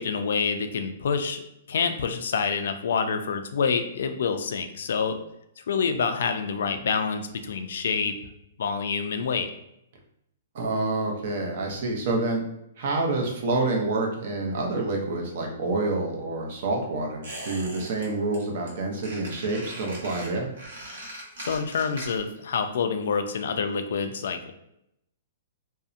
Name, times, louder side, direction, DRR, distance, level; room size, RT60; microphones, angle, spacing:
voice 1, 0.0-1.4 1.7-5.2 5.7-8.1 8.6-9.5 21.4-24.5, left 5 dB, 70° left, 7 dB, 0.3 m, -27 dB
voice 2, 10.5-12.4 12.8-20.5, right 2 dB, 50° right, 1 dB, 0.6 m, -27 dB
Squeak, 17.2-18.1 18.3-18.7 19.0-22.4 22.7-22.8, right 1 dB, 70° right, 1.1 m, -40 dB
2.7 x 2.0 x 2.4 m, 0.80 s
hypercardioid pair, 165°, 0 cm